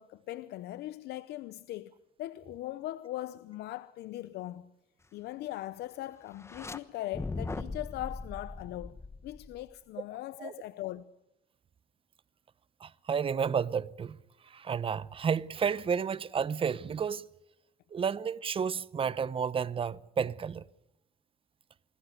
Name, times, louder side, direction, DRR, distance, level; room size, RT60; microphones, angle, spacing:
voice 1, 0.0-1.9 2.2-4.7 5.1-9.0 9.2-11.0, left 15 dB, 75° left, 0.8 m, -40 dB
sound 1, 6.3-6.8 7.1-9.7, left 3 dB, 15° left, 1.2 m, -39 dB
voice 2, 12.8-14.2 14.5-17.3 17.9-20.6, right 7 dB, 30° right, 0.8 m, -31 dB
26.5 x 20.5 x 6.6 m
cardioid pair, 110°, 17 cm